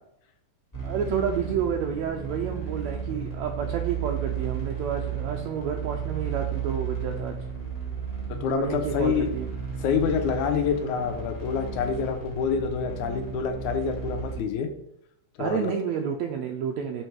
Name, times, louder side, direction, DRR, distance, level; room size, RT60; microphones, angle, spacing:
sound 1, 0.7-14.4, right 7 dB, 15° left, 1.6 m, -33 dB
voice 1, 0.8-7.4 8.5-9.5 15.4-17.0, right 7 dB, 80° right, 3 dB, 1.7 m, -30 dB
voice 2, 8.4-9.3 9.8-14.7 15.4-15.7, left 6 dB, 80° left, 6 dB, 2.2 m, -27 dB
6.4 x 4.6 x 4.6 m, 0.73 s
omnidirectional pair, 3.5 m